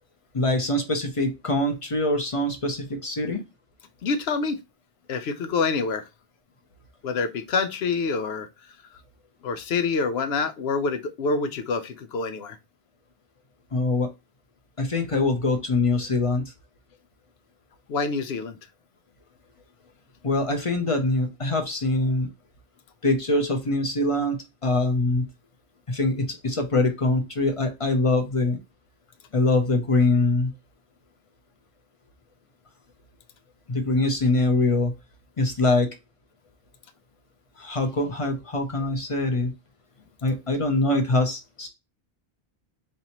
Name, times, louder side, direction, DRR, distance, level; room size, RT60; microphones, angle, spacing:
voice 1, 0.3-3.4 13.7-14.1 14.8-16.5 20.2-22.3 23.0-25.3 25.9-28.6 29.3-30.5 33.7-34.9 35.4-35.9 37.6-39.5 40.2-41.7, left 2 dB, 35° left, 0.7 m, -23 dB
voice 2, 4.0-4.6 5.1-6.0 7.0-8.5 9.4-12.6 17.9-18.6, left 4 dB, 85° left, 0.9 m, -26 dB
4.2 x 3.3 x 2.9 m
omnidirectional pair, 1.0 m